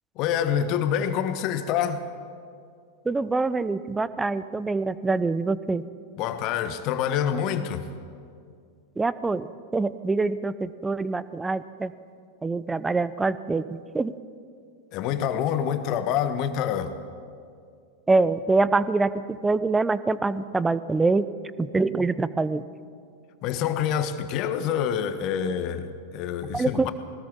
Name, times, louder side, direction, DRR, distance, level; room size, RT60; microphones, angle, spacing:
voice 1, 0.2-2.0 6.2-7.9 14.9-16.9 23.4-26.9, left 9 dB, 40° left, 10 dB, 1.5 m, -26 dB
voice 2, 3.1-5.8 9.0-9.5 9.7-11.9 12.4-14.1 18.1-21.3 21.6-22.6 26.5-26.9, right 3 dB, 10° right, 16 dB, 0.7 m, -25 dB
20.5 x 19.5 x 7.4 m, 2.3 s
figure-of-eight pair, 90°, 0 cm